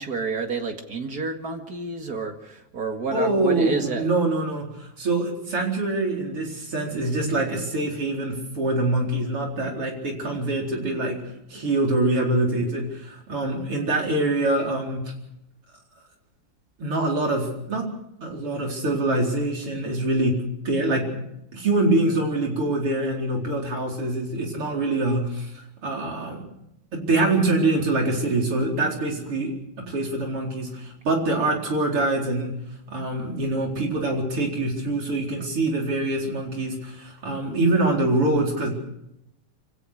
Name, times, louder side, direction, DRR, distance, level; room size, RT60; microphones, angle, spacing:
voice 1, 0.0-4.1, right 4 dB, 45° right, 4 dB, 2.4 m, -29 dB
voice 2, 3.1-11.2 11.5-15.1 16.8-17.8 18.2-20.4 20.7-21.2 21.5-26.4 26.9-29.5 29.9-32.6 32.9-38.7, right 2 dB, 80° right, 0 dB, 5.3 m, -24 dB
25.5 x 16.5 x 6.5 m, 0.81 s
omnidirectional pair, 2.4 m